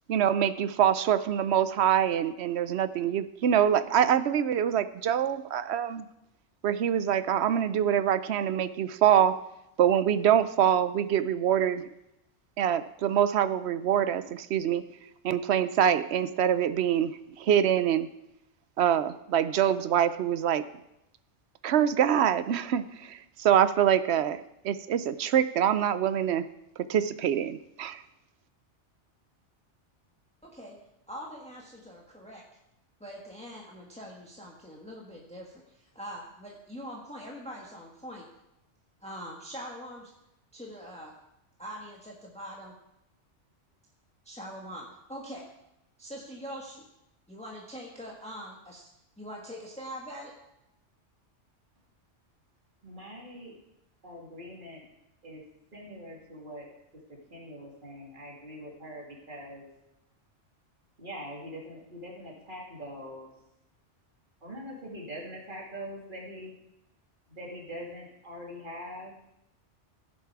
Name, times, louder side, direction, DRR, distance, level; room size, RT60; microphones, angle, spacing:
voice 1, 0.1-6.1 6.6-9.4 9.8-11.8 12.6-14.9 15.2-17.1 17.4-18.1 18.8-20.6 21.6-26.4 26.9-28.0, right 9 dB, 70° right, 14 dB, 0.8 m, -25 dB
voice 2, 30.4-30.8 31.1-32.4 33.0-38.3 39.0-40.1 40.5-41.1 41.6-42.8 44.2-45.4 46.0-46.9 47.3-48.9 49.2-50.3, equal, 5° left, -2 dB, 1.5 m, -43 dB
voice 3, 52.8-53.6 54.0-54.8 55.2-55.4 55.7-56.7 57.1-59.7 61.0-63.3 64.4-66.5 67.3-69.1, equal, 45° right, -2 dB, 2.7 m, -43 dB
16.0 x 7.3 x 4.7 m, 0.87 s
omnidirectional pair, 1.2 m